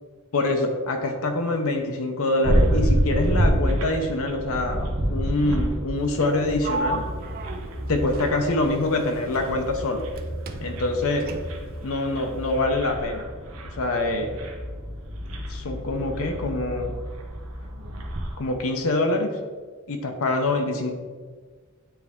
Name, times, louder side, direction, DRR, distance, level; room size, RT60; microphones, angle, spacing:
voice 1, 0.3-7.1 7.9-10.0 10.6-11.3 11.8-13.2 13.8-14.4 15.5-17.0 18.4-19.4 19.9-20.9, left 2 dB, 65° left, 4 dB, 0.7 m, -25 dB
sound 1, 2.4-18.4, equal, 70° right, 0.9 m, -28 dB
Sliding door, 6.6-10.2 10.5-11.8, right 2 dB, 40° right, 0.4 m, -35 dB
8.6 x 3.4 x 3.6 m, 1.5 s
head